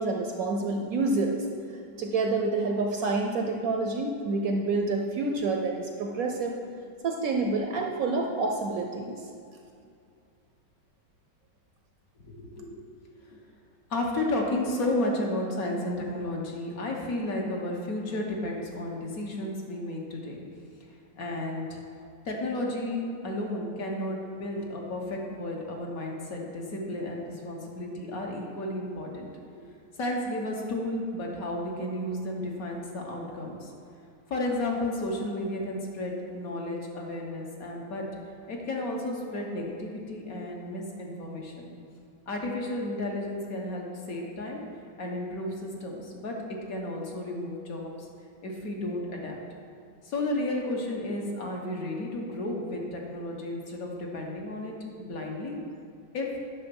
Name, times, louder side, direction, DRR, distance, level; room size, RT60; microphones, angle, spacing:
voice 1, 0.0-1.4 2.0-6.6 7.0-9.2, right 3 dB, 65° right, 2 dB, 1.0 m, -28 dB
voice 2, 12.2-12.8 13.2-13.4 13.9-20.4 21.2-21.8 22.2-29.3 30.0-33.7 34.3-38.1 38.5-41.7 42.3-44.6 45.0-46.4 46.7-48.1 48.4-49.4 50.0-55.6 56.1-56.3, left 1 dB, 55° left, 0 dB, 1.5 m, -33 dB
9.9 x 6.5 x 5.3 m, 2.4 s
omnidirectional pair, 2.0 m